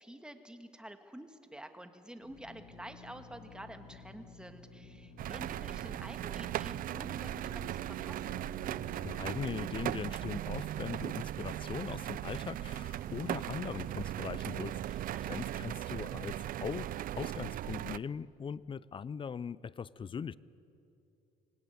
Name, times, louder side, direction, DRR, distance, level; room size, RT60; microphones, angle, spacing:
voice 1, 0.0-8.4 15.1-15.4, right 1 dB, 5° right, 7 dB, 1.8 m, -49 dB
Drill, 2.2-10.8, left 4 dB, 85° left, 3.2 m, -54 dB
sound 1, 5.2-18.0, right 13 dB, 55° right, 0.5 m, -38 dB
sound 2, 7.9-16.8, right 4 dB, 90° right, 5.3 m, -60 dB
voice 2, 9.0-20.4, left 6 dB, 30° left, 19 dB, 0.6 m, -40 dB
25.0 x 18.0 x 9.6 m, 2.8 s
cardioid pair, 110°, 17 cm